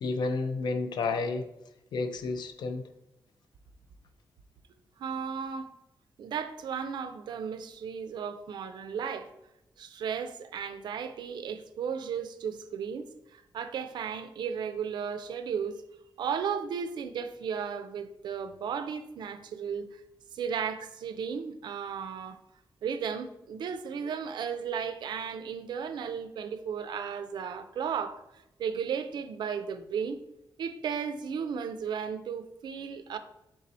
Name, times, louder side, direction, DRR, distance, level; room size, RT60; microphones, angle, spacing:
voice 1, 0.0-1.4 1.9-2.8, left 3 dB, 70° left, 0.4 m, -30 dB
voice 2, 5.0-5.7 6.2-9.3 9.8-15.8 16.2-19.9 20.3-22.4 22.8-28.2 28.6-30.2 30.6-33.2, right 7 dB, 70° right, 0.3 m, -35 dB
3.6 x 2.6 x 4.1 m
wide cardioid pair, 165°, 8 cm